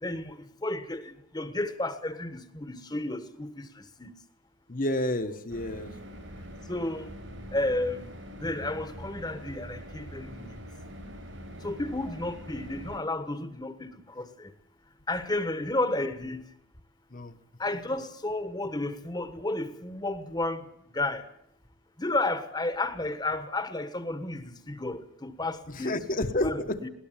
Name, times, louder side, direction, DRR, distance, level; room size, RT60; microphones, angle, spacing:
voice 1, 0.0-4.1 6.7-7.1 7.5-8.1 8.4-10.6 11.6-14.5 15.1-16.4 17.6-21.2 22.0-26.0 26.4-26.9, left 2 dB, 20° left, 1.4 m, -32 dB
voice 2, 4.7-5.9 17.1-17.3 25.7-26.8, left 1 dB, 45° left, 1.5 m, -30 dB
sound 1, 5.5-13.0, equal, 80° right, 6.2 m, -44 dB
20.5 x 18.5 x 7.4 m
head